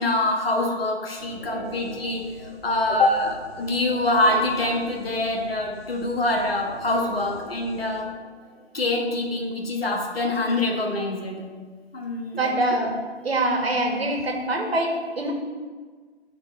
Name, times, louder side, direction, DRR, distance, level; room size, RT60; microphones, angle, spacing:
voice 1, 0.0-8.1 8.7-11.4 11.9-12.4, left 2 dB, 55° left, 1 dB, 1.5 m, -25 dB
sound 1, 1.2-8.8, right 2 dB, 15° right, 0.5 m, -42 dB
voice 2, 12.4-12.9 13.2-15.3, right 1 dB, 60° right, 1 dB, 1.6 m, -24 dB
11.0 x 4.0 x 4.3 m, 1.5 s
figure-of-eight pair, 140°, 34 cm